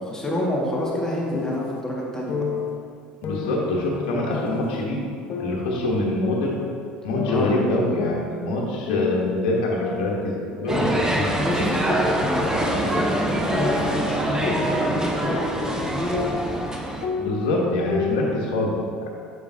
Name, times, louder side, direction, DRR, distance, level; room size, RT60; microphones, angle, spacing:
voice 1, 0.0-2.4 7.3-7.6 11.4-16.5, equal, 10° left, -5 dB, 1.7 m, -28 dB
sound 1, 0.8-1.8 2.3-2.8 3.2-4.9 5.3-6.9 7.1-8.6 8.9-9.4 9.8-12.2 12.6-16.7 17.0-18.3, left 5 dB, 50° left, 0.7 m, -31 dB
voice 2, 3.2-5.0 5.4-6.6 7.0-11.3 17.2-19.1, left 1 dB, 65° left, -3 dB, 1.1 m, -25 dB
sound 2, 10.7-17.1, right 1 dB, 15° right, 0.9 m, -25 dB
6.8 x 6.6 x 2.7 m, 2.2 s
hypercardioid pair, 65°, 5 cm